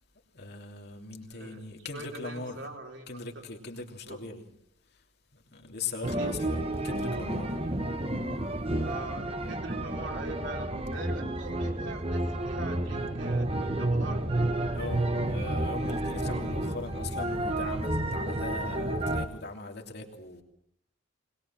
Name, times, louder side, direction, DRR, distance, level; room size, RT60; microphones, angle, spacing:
voice 1, 0.3-2.6 3.1-4.5 5.3-7.6 14.7-20.4, left 3 dB, 55° left, 3.1 m, -40 dB
voice 2, 1.3-3.4 4.0-4.2 6.1-6.4 8.8-13.5 13.8-14.3, right 2 dB, 65° right, 4.5 m, -42 dB
sound 1, 6.0-19.3, right 1 dB, 30° right, 1.4 m, -30 dB
21.5 x 21.0 x 7.6 m
head